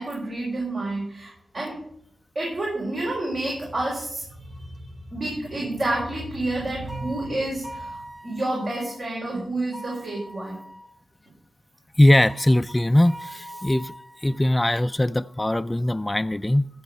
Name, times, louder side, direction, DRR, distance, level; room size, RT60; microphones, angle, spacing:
voice 1, 0.0-1.8 2.3-10.6, right 2 dB, 60° right, -4 dB, 4.4 m, -29 dB
sound 1, 6.9-9.0 9.7-11.0 12.3-14.5, right 1 dB, 40° right, 2.4 m, -42 dB
voice 2, 12.0-13.9 14.2-16.7, left 1 dB, 15° left, 9 dB, 0.3 m, -20 dB
14.0 x 7.2 x 5.4 m, 0.70 s
cardioid pair, 60°, 0 cm